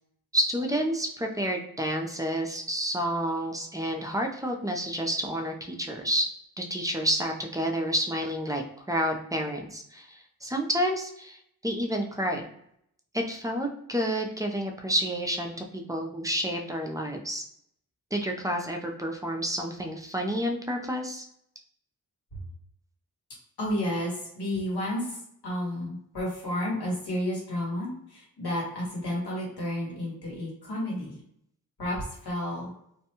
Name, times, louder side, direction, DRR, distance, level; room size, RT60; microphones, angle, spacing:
voice 1, 0.3-6.3 6.6-12.5 13.1-17.4 18.1-21.2, equal, 10° right, 2 dB, 0.5 m, -29 dB
voice 2, 23.6-31.2 31.8-32.7, left 1 dB, 80° left, -4 dB, 1.4 m, -31 dB
2.6 x 2.2 x 2.9 m, 0.72 s
cardioid pair, 50°, 39 cm